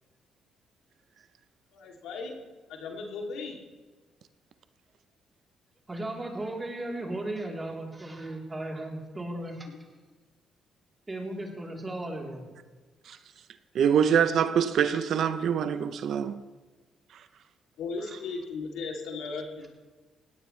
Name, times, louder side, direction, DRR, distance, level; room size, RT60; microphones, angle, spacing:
voice 1, 1.7-2.4 2.7-3.5 17.8-19.7, left 4 dB, 90° left, 3.0 m, -36 dB
voice 2, 5.9-9.9 11.1-12.5 18.1-18.2, right 1 dB, 20° right, 3.7 m, -36 dB
voice 3, 13.7-16.4, right 8 dB, 70° right, 0.8 m, -24 dB
20.0 x 17.0 x 3.3 m
cardioid pair, 90°, 0 cm